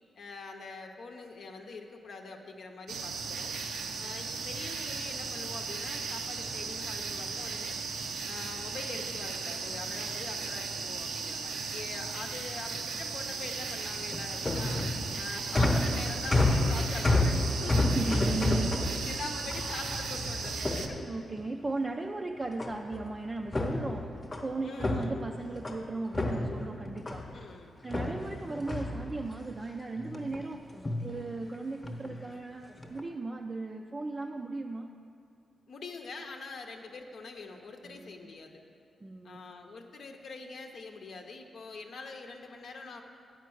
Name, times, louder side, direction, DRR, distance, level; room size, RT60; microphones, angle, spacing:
voice 1, 0.2-3.6 4.0-7.8 8.3-14.8 15.2-18.3 19.1-21.0 24.6-25.1 27.3-27.8 35.7-38.6 39.2-43.0, left 3 dB, 65° left, 2 dB, 0.7 m, -44 dB
sound 1, 2.9-20.9, right 4 dB, 85° right, 0.6 m, -36 dB
sound 2, 13.9-21.5 22.6-23.1 23.4-25.8 26.1-27.4 27.9-29.6 30.0-30.5 30.7-31.1 31.8-32.2 32.7-33.0, left 2 dB, 25° left, 0.9 m, -30 dB
voice 2, 17.8-18.8 21.0-24.1 24.4-27.2 27.8-30.6 31.0-34.9 37.8-38.3 39.0-39.4, right 3 dB, 30° right, 2 dB, 0.4 m, -36 dB
8.5 x 5.2 x 7.7 m, 2.4 s
cardioid pair, 110°, 0 cm